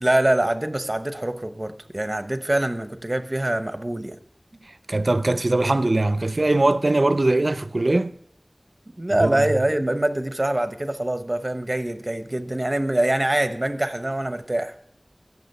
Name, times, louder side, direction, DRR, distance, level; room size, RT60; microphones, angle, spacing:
voice 1, 0.0-4.2 9.0-14.7, right 1 dB, 40° right, 0.9 m, -24 dB
voice 2, 4.9-8.1 9.2-9.5, right 2 dB, 70° right, 0.5 m, -21 dB
15.5 x 7.2 x 5.5 m
wide cardioid pair, 40°, 0 cm